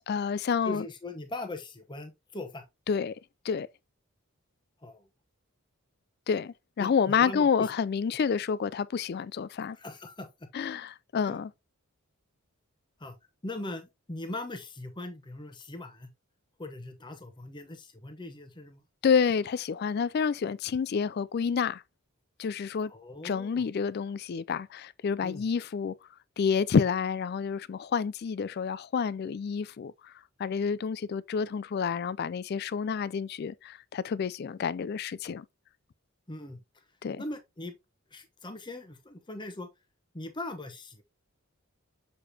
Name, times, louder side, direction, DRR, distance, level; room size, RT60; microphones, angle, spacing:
voice 1, 0.1-0.8 2.9-3.1 3.4-3.7 6.3-9.8 10.5-11.5 19.0-21.8 22.4-22.9 23.2-25.9 26.4-29.9 30.4-35.4 37.0-37.2, left 6 dB, 45° left, 0.3 m, -29 dB
voice 2, 0.6-2.6 4.8-5.1 6.8-7.7 9.7-10.5 11.2-11.4 13.0-13.1 13.4-16.1 16.6-18.8 22.9-23.6 25.2-25.5 36.3-36.6 37.2-37.8 38.1-39.7 40.1-41.0, left 2 dB, 20° left, 0.9 m, -40 dB
6.9 x 5.0 x 2.8 m
head